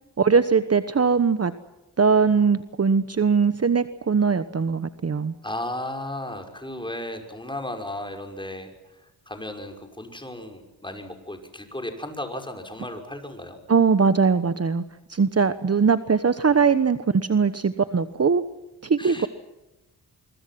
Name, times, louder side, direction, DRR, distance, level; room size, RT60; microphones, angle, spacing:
voice 1, 0.2-1.5 2.0-5.3 13.7-14.8 15.1-18.4 18.8-19.3, right 5 dB, 35° right, 11 dB, 1.2 m, -21 dB
voice 2, 5.4-13.6 19.0-19.3, left 1 dB, 10° left, 4 dB, 6.0 m, -35 dB
25.5 x 24.0 x 6.0 m, 0.99 s
cardioid pair, 85°, 41 cm